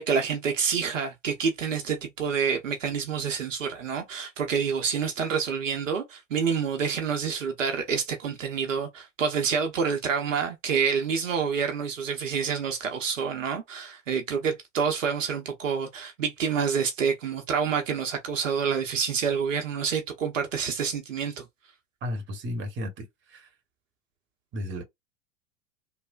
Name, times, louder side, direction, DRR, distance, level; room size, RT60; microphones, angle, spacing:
voice 1, 0.0-21.4, right 6 dB, 80° right, 0.7 m, -28 dB
voice 2, 22.0-23.1 23.3-23.5 24.5-24.8, left 1 dB, 30° right, 1.1 m, -33 dB
3.1 x 2.1 x 2.3 m
figure-of-eight pair, 85°, 38 cm